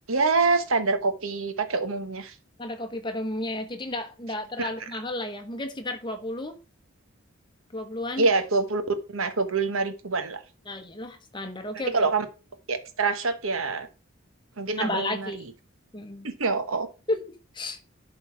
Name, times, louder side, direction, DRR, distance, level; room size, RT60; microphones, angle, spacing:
voice 1, 0.1-2.3 4.6-4.9 8.2-8.8 9.1-10.4 11.9-12.2 12.7-13.9 14.6-15.4 16.2-16.9, right 3 dB, 75° right, 1.2 m, -26 dB
voice 2, 2.6-6.6 7.7-8.3 10.7-12.1 14.8-15.4 15.9-16.3 17.1-17.2 17.5-17.8, left 1 dB, 20° left, 1.1 m, -32 dB
11.0 x 3.9 x 4.8 m
head